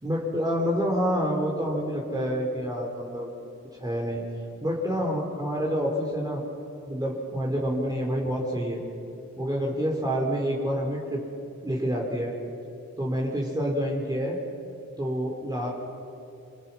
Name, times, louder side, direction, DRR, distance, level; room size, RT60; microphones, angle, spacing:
voice 1, 0.0-3.3 3.8-4.2 4.6-6.4 6.9-8.8 9.4-11.2 11.6-12.3 13.0-14.4 15.0-15.7, equal, 15° right, -3 dB, 4.4 m, -27 dB
28.0 x 23.0 x 6.1 m, 2.7 s
cardioid pair, 75°, 30 cm